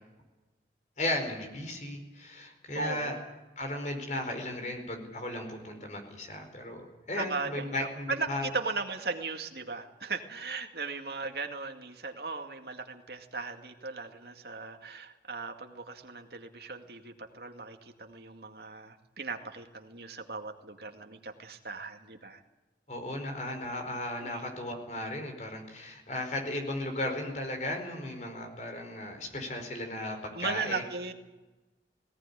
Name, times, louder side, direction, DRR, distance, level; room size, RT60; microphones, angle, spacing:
voice 1, 1.0-3.1 3.6-8.5 22.9-30.8, left 1 dB, 40° left, 4 dB, 4.8 m, -35 dB
voice 2, 2.8-3.2 7.2-22.4 24.2-24.4 30.3-31.1, right 4 dB, 65° right, 5 dB, 2.2 m, -37 dB
19.0 x 18.5 x 9.9 m, 1.1 s
head